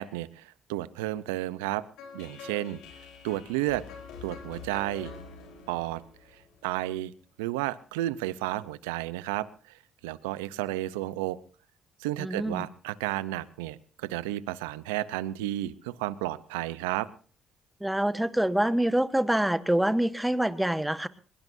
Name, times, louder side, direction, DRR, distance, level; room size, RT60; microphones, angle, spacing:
voice 1, 0.0-1.8 2.1-2.8 3.2-3.8 4.2-5.1 5.7-6.0 6.6-7.1 7.4-11.4 12.0-17.1, right 15 dB, 90° right, 17 dB, 0.7 m, -32 dB
sound 1, 2.0-7.0, left 5 dB, 80° left, 4.0 m, -46 dB
voice 2, 12.2-12.7 17.8-21.1, right 1 dB, 5° right, 13 dB, 1.4 m, -26 dB
22.5 x 21.0 x 2.7 m, 0.39 s
hypercardioid pair, 55°, 0 cm